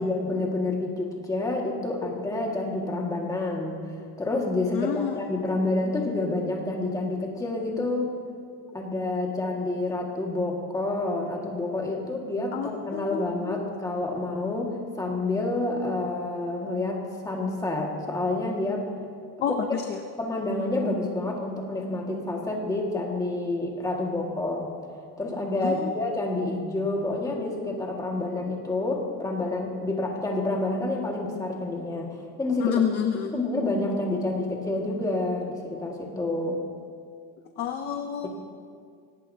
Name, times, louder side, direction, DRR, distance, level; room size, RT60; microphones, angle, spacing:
voice 1, 0.0-3.8 4.2-8.1 8.7-18.8 19.5-19.6 20.2-24.7 25.2-32.8 33.3-36.6 38.2-38.3, left 2 dB, 10° left, -1 dB, 1.7 m, -28 dB
voice 2, 4.7-5.2 12.5-13.6 19.4-20.0 25.6-25.9 32.6-33.3 37.6-38.3, left 8 dB, 25° left, 5 dB, 0.4 m, -29 dB
23.5 x 18.0 x 2.7 m, 2.2 s
cardioid pair, 175°, 43 cm